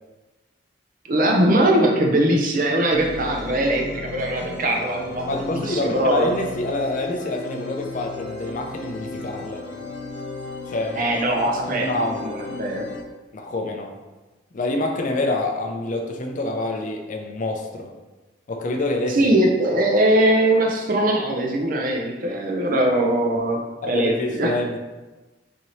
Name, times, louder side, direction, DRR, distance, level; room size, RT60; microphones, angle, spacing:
voice 1, 1.1-5.4 5.6-6.4 11.0-11.9 12.2-12.9 19.1-23.6 23.9-24.5, right 1 dB, 50° right, 1 dB, 0.6 m, -21 dB
sound 1, 2.9-13.0, left 2 dB, 85° left, 0.7 m, -35 dB
voice 2, 5.3-9.6 10.7-11.0 11.7-12.2 13.3-14.0 14.5-17.9 18.5-19.3 23.8-24.8, left 2 dB, 45° left, 3 dB, 0.4 m, -26 dB
4.1 x 2.7 x 3.1 m, 1.2 s
head